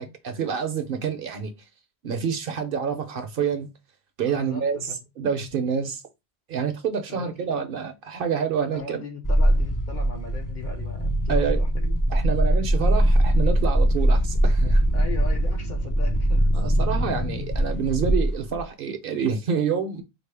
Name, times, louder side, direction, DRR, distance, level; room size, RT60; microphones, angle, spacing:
voice 1, 0.0-1.5 2.0-3.7 4.2-6.0 6.5-9.0 11.3-11.6 12.1-14.8 16.5-20.0, right 6 dB, 60° right, 0.7 m, -27 dB
voice 2, 4.3-4.9 5.6-5.9 7.1-7.7 8.7-12.0 12.5-12.6 14.9-16.5, left 5 dB, 50° left, 0.8 m, -39 dB
sound 1, 9.2-18.6, right 1 dB, 35° left, 0.3 m, -22 dB
4.2 x 2.1 x 3.2 m
omnidirectional pair, 1.1 m